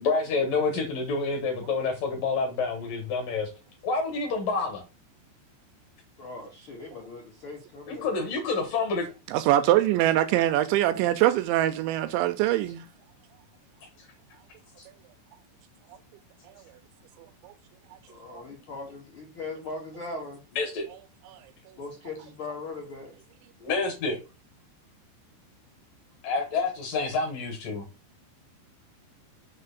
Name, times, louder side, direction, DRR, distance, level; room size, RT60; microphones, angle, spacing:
voice 1, 0.0-3.5 3.8-4.8 7.9-9.1 20.5-20.9 23.6-24.2 26.2-27.9, left 4 dB, 65° left, 2.4 m, -28 dB
voice 2, 6.2-8.1 18.0-20.4 21.8-23.2, left 3 dB, 80° left, 1.2 m, -39 dB
voice 3, 9.3-12.9 16.5-16.6 17.4-17.5 18.3-18.4 21.3-21.4, right 13 dB, 85° right, 2.7 m, -23 dB
6.7 x 3.1 x 5.7 m
omnidirectional pair, 5.5 m